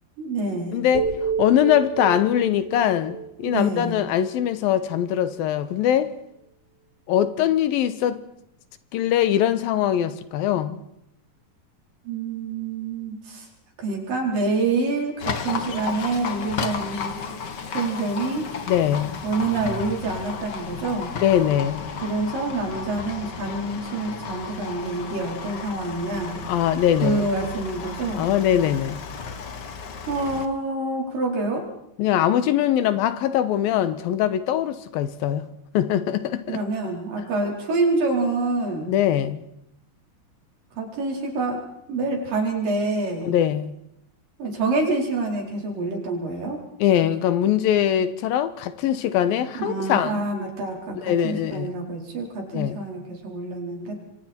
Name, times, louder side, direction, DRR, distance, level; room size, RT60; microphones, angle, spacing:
voice 1, 0.2-0.8 3.4-3.9 12.0-13.5 13.8-17.1 17.7-18.5 19.2-21.1 22.0-26.4 27.0-28.3 30.1-31.6 36.5-38.9 40.8-41.6 41.9-43.3 44.4-46.6 49.6-53.9, right 3 dB, 70° right, 6.1 m, -27 dB
voice 2, 0.7-6.1 7.1-8.2 8.9-10.8 18.7-19.2 21.2-21.9 26.4-27.3 28.2-29.0 32.0-35.5 35.7-36.6 38.9-39.4 43.3-43.7 46.8-50.2 51.0-51.7 52.5-52.8, left 10 dB, 85° left, 2.9 m, -22 dB
sound 1, 0.9-5.0, right 5 dB, 90° right, 6.1 m, -31 dB
Livestock farm animals working animals, 15.2-30.5, left 5 dB, 65° left, 1.0 m, -33 dB
28.0 x 24.0 x 4.4 m
omnidirectional pair, 4.1 m